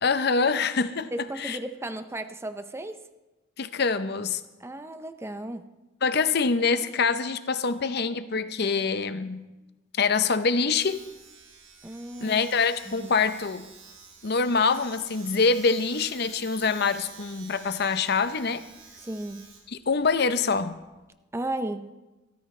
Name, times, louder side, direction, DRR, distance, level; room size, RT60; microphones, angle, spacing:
voice 1, 0.0-1.1 1.4-1.6 3.6-4.4 6.0-9.4 10.0-11.0 12.2-13.7 14.2-18.6 19.7-20.8, left 4 dB, 55° left, 12 dB, 0.7 m, -25 dB
voice 2, 1.1-3.0 4.6-5.7 11.8-12.4 12.9-13.1 19.0-19.5 21.3-21.9, right 1 dB, 15° right, 10 dB, 0.5 m, -35 dB
Domestic sounds home sounds, 10.7-21.1, right 5 dB, 80° right, 4.3 m, -50 dB
22.0 x 14.0 x 3.2 m, 1.1 s
head